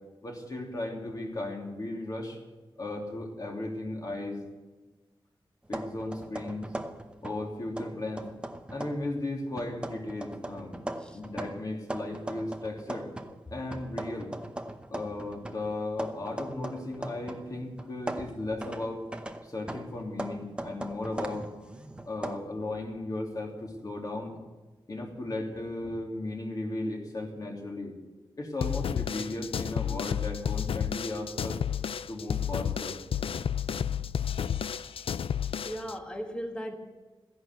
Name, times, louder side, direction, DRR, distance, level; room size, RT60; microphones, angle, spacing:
voice 1, 0.2-2.4 2.8-4.4 5.7-6.7 7.2-8.3 8.7-10.8 11.1-13.1 13.5-14.3 14.9-19.0 19.4-21.5 22.1-24.3 24.9-27.9 28.4-31.6 32.1-33.0 33.8-33.9, left 2 dB, 40° left, 0 dB, 3.1 m, -36 dB
sound 1, 5.7-7.5 7.8-9.1 9.6-13.4 13.7-17.5 17.8-22.4, right 1 dB, 10° right, 0.9 m, -39 dB
sound 2, 28.6-35.9, left 8 dB, 80° left, 0.4 m, -31 dB
voice 2, 35.6-36.8, equal, 10° left, 4 dB, 1.5 m, -37 dB
15.0 x 11.0 x 8.3 m, 1.2 s
wide cardioid pair, 135°, 9 cm